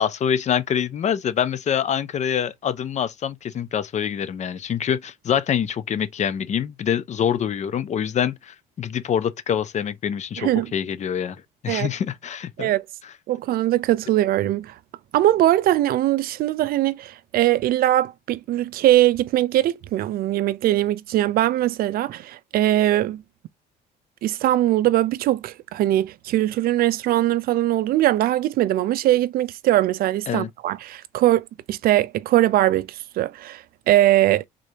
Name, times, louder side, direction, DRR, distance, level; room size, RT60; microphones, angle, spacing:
voice 1, 0.0-12.7 30.3-30.5, left 8 dB, 45° left, 0.6 m, -25 dB
voice 2, 13.3-14.7 15.1-23.2 24.2-34.4, right 14 dB, 60° right, 0.4 m, -21 dB
3.7 x 3.3 x 2.7 m
cardioid pair, 110°, 17 cm